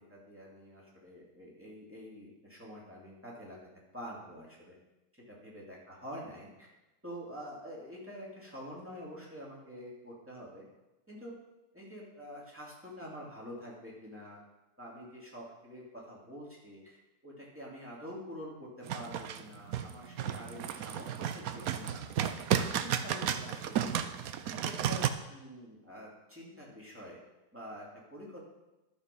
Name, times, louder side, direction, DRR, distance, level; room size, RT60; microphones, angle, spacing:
voice 1, 0.0-4.7 5.1-6.7 7.0-10.6 11.1-11.3 11.7-14.4 14.8-17.0 17.2-22.0 22.5-24.1 24.4-27.2 27.5-28.4, equal, 5° right, -5 dB, 2.7 m, -47 dB
sound 1, 18.9-25.1, right 9 dB, 65° right, 0.9 m, -33 dB
12.0 x 7.0 x 5.3 m, 1.0 s
omnidirectional pair, 1.9 m